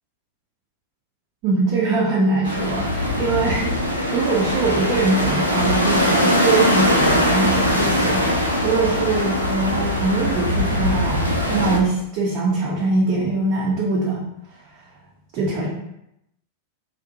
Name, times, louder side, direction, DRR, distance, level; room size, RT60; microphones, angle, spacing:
voice 1, 1.4-14.2 15.3-15.7, right 3 dB, 45° right, -5 dB, 0.5 m, -22 dB
sound 1, 2.4-11.8, left 1 dB, 90° left, 0.4 m, -21 dB
2.7 x 2.1 x 2.7 m, 0.82 s
figure-of-eight pair, 90°, 0 cm